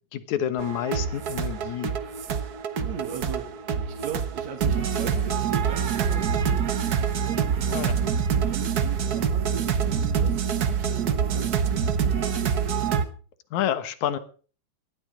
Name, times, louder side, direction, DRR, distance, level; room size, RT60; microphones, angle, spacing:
voice 1, 0.1-1.9 7.7-7.9 13.5-14.2, left 10 dB, 70° left, 13 dB, 2.6 m, -28 dB
sound 1, 0.6-13.0, right 7 dB, 85° right, 0.8 m, -26 dB
voice 2, 2.8-8.1 8.4-11.6, right 8 dB, 65° right, 2 dB, 2.8 m, -39 dB
19.0 x 12.5 x 5.0 m, 0.40 s
omnidirectional pair, 3.5 m